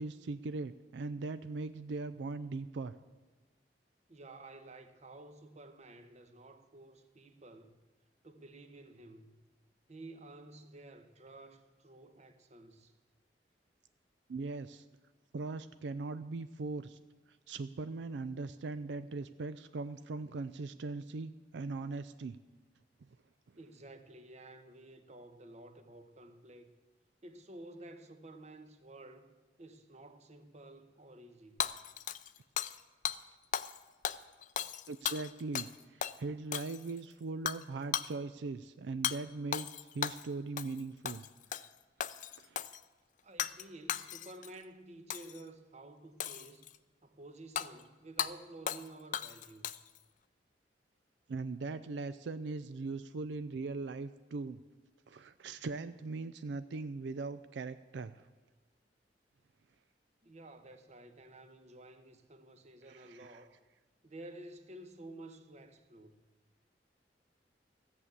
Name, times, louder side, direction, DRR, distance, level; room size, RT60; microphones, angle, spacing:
voice 1, 0.0-2.9 14.3-14.9 15.3-17.0 17.5-22.4 34.9-41.2 41.6-41.7 42.4-42.6 51.3-54.6 55.1-58.2 62.9-63.4, right 3 dB, 85° right, 0.4 m, -40 dB
voice 2, 4.1-7.8 8.2-9.4 9.9-12.9 23.6-26.7 27.2-31.6 43.2-46.7 47.0-49.8 60.2-63.6 64.0-66.2, right 2 dB, 40° right, 1.0 m, -52 dB
Hammer / Shatter, 31.6-32.8 33.0-33.2 33.5-33.8 34.0-35.7 36.0-36.2 36.5-37.0 37.5-37.6 37.9-38.1 39.0-39.2 39.5-40.3 40.6-40.8 41.0-41.7 42.0-42.8 43.4-43.6 43.9-44.5 45.1-45.4 46.2-46.8 47.6-47.7 48.2-48.3 48.7-48.9 49.1-50.0, left 9 dB, 45° left, 0.4 m, -36 dB
14.0 x 7.3 x 8.1 m
head